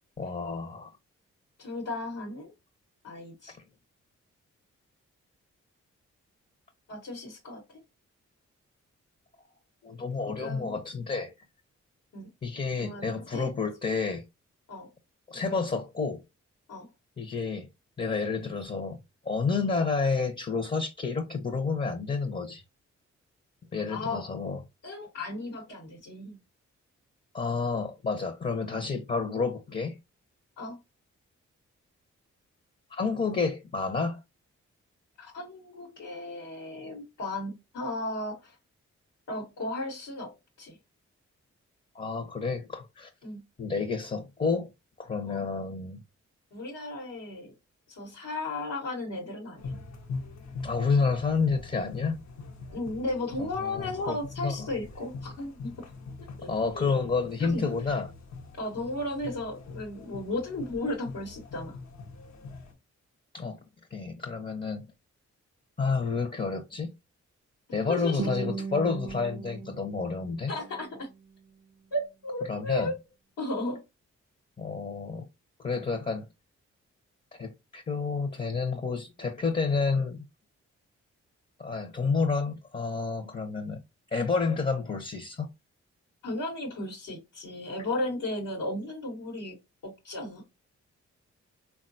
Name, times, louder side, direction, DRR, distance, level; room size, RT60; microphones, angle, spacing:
voice 1, 0.2-0.9 9.8-11.3 12.4-14.2 15.3-16.2 17.2-17.7 18.0-19.0 19.2-22.6 23.7-24.6 27.3-29.9 32.9-34.2 41.9-43.1 43.6-44.7 45.0-46.0 50.6-52.2 53.6-54.2 54.4-54.6 56.5-58.1 63.3-63.6 63.9-64.9 65.8-66.9 67.7-70.5 72.5-72.9 74.6-75.3 75.6-76.2 77.4-80.2 81.6-83.8 84.1-85.5, left 4 dB, 25° left, 0.7 m, -29 dB
voice 2, 1.6-2.5 3.0-3.6 6.9-7.6 10.4-10.8 12.1-12.3 12.8-13.5 14.7-14.9 16.7-16.9 23.9-24.3 24.8-26.4 30.6-30.8 35.2-38.6 39.3-40.8 43.2-43.4 45.3-45.4 46.5-47.5 47.9-49.8 52.7-55.9 56.2-56.5 56.7-56.9 57.4-58.0 58.6-61.8 67.9-68.3 70.5-71.1 71.9-72.9 73.4-73.8 86.2-89.6 89.8-90.4, left 2 dB, 85° left, 1.1 m, -35 dB
sound 1, 49.6-62.7, left 4 dB, 60° left, 0.7 m, -42 dB
Guitar, 68.2-71.2, right 5 dB, 30° right, 0.4 m, -38 dB
3.6 x 2.3 x 2.5 m
supercardioid pair, 50°, 30 cm